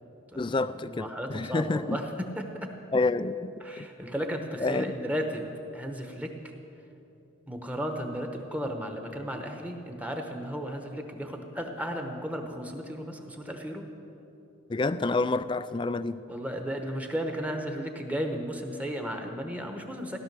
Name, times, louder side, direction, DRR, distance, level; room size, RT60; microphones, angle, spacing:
voice 1, 0.4-2.0 2.9-3.9 4.6-4.9 14.7-16.2, left 3 dB, 25° left, 0.3 m, -28 dB
voice 2, 0.9-2.7 3.6-5.5 5.7-6.5 7.5-13.9 16.3-20.2, equal, 5° right, 1.0 m, -34 dB
16.5 x 11.5 x 6.7 m
head